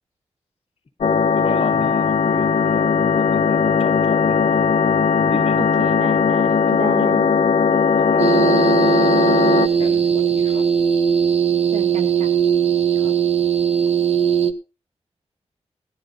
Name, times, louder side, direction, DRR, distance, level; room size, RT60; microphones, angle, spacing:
sound 1, 1.0-9.7, left 6 dB, 90° left, 1.0 m, -18 dB
voice 1, 1.3-4.6 5.2-5.6 8.0-8.6 9.0-9.3 9.8-10.7 12.9-13.2, left 3 dB, 60° left, 1.7 m, -33 dB
voice 2, 5.6-7.3 11.7-12.3, right 4 dB, 85° right, 1.1 m, -32 dB
sound 2, 8.2-14.5, right 8 dB, 65° right, 1.2 m, -19 dB
18.0 x 11.5 x 2.6 m
cardioid pair, 60°, 11 cm